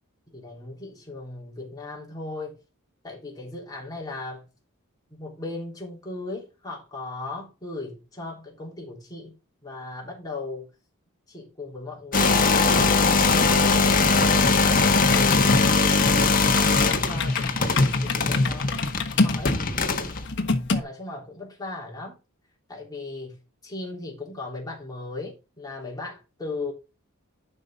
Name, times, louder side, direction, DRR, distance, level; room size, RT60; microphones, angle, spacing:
voice 1, 0.3-2.6 3.0-4.5 5.1-10.7 11.3-13.5 14.1-14.9 15.1-16.2 16.5-18.8 19.2-19.6 20.7-22.2 22.7-26.7, left 2 dB, 20° left, 3.6 m, -37 dB
sound 1, 12.1-20.2, left 4 dB, 40° left, 1.5 m, -21 dB
sound 2, 12.8-20.8, left 2 dB, 55° left, 1.3 m, -28 dB
11.5 x 5.6 x 3.8 m
head